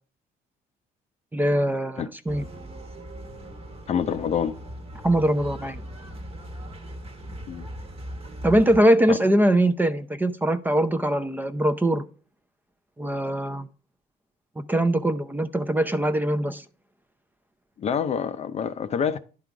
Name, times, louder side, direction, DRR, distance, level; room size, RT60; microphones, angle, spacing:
voice 1, 1.3-2.4 5.0-5.8 8.4-12.0 13.0-13.7 14.7-16.6, right 1 dB, 10° right, 0.5 m, -22 dB
sound 1, 2.3-8.8, equal, 35° right, 1.3 m, -39 dB
voice 2, 3.9-4.6 7.5-7.7 9.1-9.2 17.8-19.2, left 7 dB, 40° left, 0.5 m, -26 dB
11.0 x 3.8 x 4.7 m
cardioid pair, 110°, 17 cm